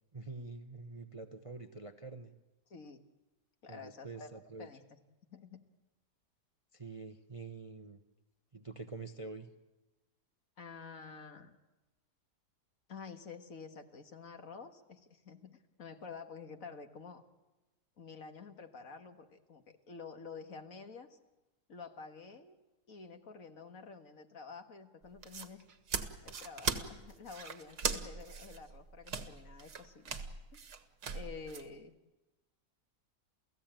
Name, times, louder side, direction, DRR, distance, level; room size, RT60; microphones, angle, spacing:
voice 1, 0.1-2.3 3.7-4.7 6.7-8.0 8.5-9.5, right 3 dB, 25° right, 7 dB, 0.8 m, -46 dB
voice 2, 2.7-3.0 3.6-5.0 5.3-5.6 10.6-11.6 12.9-17.2 18.0-21.2 21.7-22.6 22.9-25.6 26.2-30.2 30.5-30.6 31.1-31.9, left 5 dB, 55° left, 6 dB, 1.9 m, -49 dB
sound 1, 25.0-31.7, right 6 dB, 75° right, 2.0 m, -39 dB
29.0 x 16.5 x 8.9 m, 1.1 s
omnidirectional pair, 1.7 m